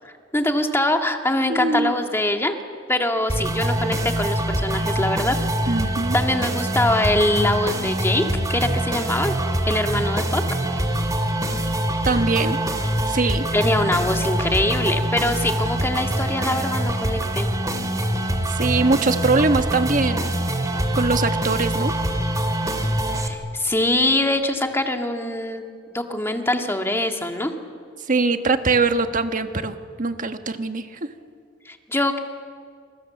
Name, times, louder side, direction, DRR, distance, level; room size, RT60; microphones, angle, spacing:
voice 1, 0.3-2.6 2.9-5.4 6.1-9.4 9.6-10.4 13.1-13.2 13.5-17.5 23.1-25.6 25.9-27.5 31.7-32.2, left 1 dB, 15° left, 4 dB, 1.9 m, -23 dB
voice 2, 1.5-1.9 5.7-6.2 12.0-12.6 13.1-13.4 18.5-20.3 20.9-21.9 28.1-30.9, right 3 dB, 45° right, 7 dB, 1.4 m, -22 dB
sound 1, 3.3-23.3, right 1 dB, 20° right, 2.4 m, -24 dB
27.0 x 25.5 x 7.4 m, 2.1 s
head